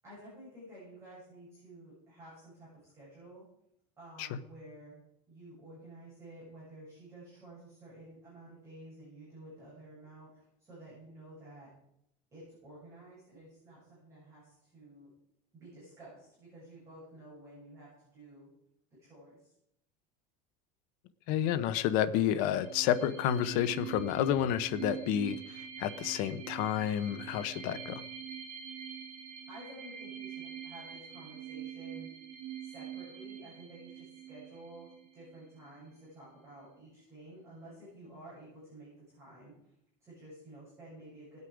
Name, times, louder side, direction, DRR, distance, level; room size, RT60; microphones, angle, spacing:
voice 1, 0.0-3.4 4.0-5.0 5.3-11.7 12.3-15.1 15.5-18.5 18.9-19.5 29.5-32.1 32.6-39.7 40.0-41.5, right 1 dB, 15° right, -9 dB, 7.4 m, -52 dB
voice 2, 21.3-28.0, left 10 dB, 50° left, 13 dB, 0.8 m, -30 dB
sound 1, 22.3-35.7, right 9 dB, 45° right, 2.2 m, -45 dB
19.5 x 8.3 x 5.0 m, 0.76 s
cardioid pair, 175°, 17 cm